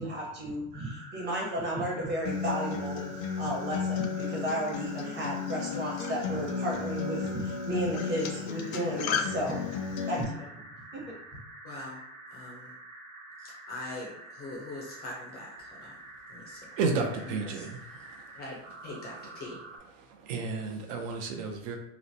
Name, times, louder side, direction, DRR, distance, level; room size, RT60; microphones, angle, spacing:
voice 1, 0.0-3.0 3.4-9.7 10.1-10.5 10.9-11.1, right 1 dB, 25° right, -3 dB, 0.9 m, -33 dB
sound 1, 0.7-19.8, right 2 dB, 90° right, 0.9 m, -48 dB
Acoustic guitar, 2.2-10.2, left 6 dB, 80° left, 0.5 m, -33 dB
voice 2, 11.6-12.0 12.3-12.7 13.4-16.0 16.3-16.7 17.2-17.7 18.3-19.6, left 2 dB, 25° left, -3 dB, 0.4 m, -42 dB
voice 3, 16.8-18.3 19.9-21.8, right 4 dB, 65° right, 3 dB, 0.6 m, -32 dB
3.0 x 2.0 x 2.6 m, 0.83 s
supercardioid pair, 135°, 40 cm